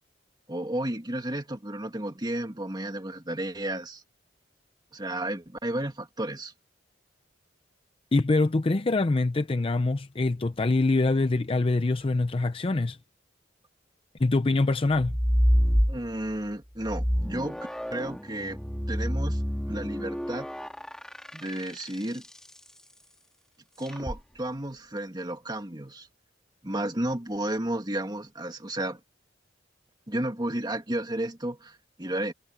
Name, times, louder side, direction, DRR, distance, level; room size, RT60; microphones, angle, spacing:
voice 1, 0.5-4.0 4.9-6.5 15.9-17.6 17.9-18.6 18.9-19.4 19.7-20.5 21.3-22.2 23.8-26.1 26.6-29.0 30.1-32.3, right 1 dB, 25° right, 2.1 m, -32 dB
voice 2, 8.1-13.0 14.2-15.1, left 2 dB, 30° left, 0.5 m, -24 dB
sound 1, 14.9-16.4 16.8-22.3 23.9-24.2, equal, 5° left, 2.3 m, -28 dB
head